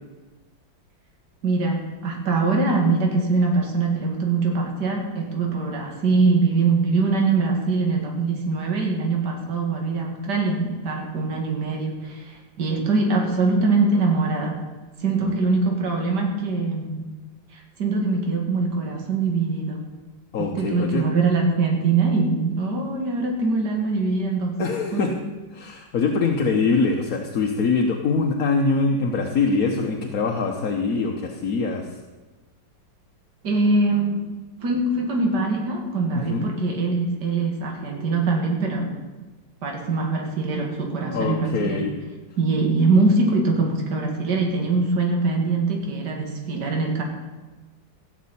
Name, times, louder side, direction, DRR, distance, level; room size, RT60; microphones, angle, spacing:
voice 1, 1.4-14.6 15.0-17.1 17.5-19.8 20.5-24.5 24.9-25.0 33.4-34.2 34.6-38.9 39.6-41.8 42.4-47.0, right 3 dB, 65° right, 1 dB, 2.6 m, -23 dB
voice 2, 20.3-21.1 24.6-25.1 25.5-32.0 36.1-36.6 41.1-41.9, left 4 dB, 55° left, 1 dB, 1.4 m, -23 dB
16.0 x 6.5 x 8.5 m, 1.2 s
omnidirectional pair, 2.0 m